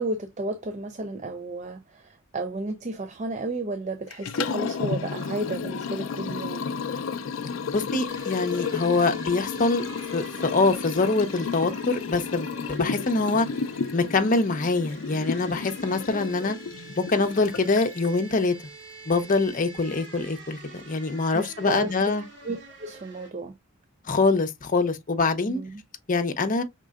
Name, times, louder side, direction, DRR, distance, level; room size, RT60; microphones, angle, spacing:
voice 1, 0.0-6.7 21.3-23.5 25.5-25.8, right 2 dB, 35° right, 0.5 m, -33 dB
Liquid, 4.1-18.2, left 5 dB, 70° left, 0.4 m, -32 dB
voice 2, 7.7-9.8 10.1-13.5 13.9-16.6 17.0-18.5 19.1-22.2 24.1-25.6 26.1-26.6, left 3 dB, 40° left, 0.7 m, -24 dB
sound 1, 8.1-23.3, right 3 dB, 60° right, 2.4 m, -46 dB
5.3 x 3.7 x 2.4 m
head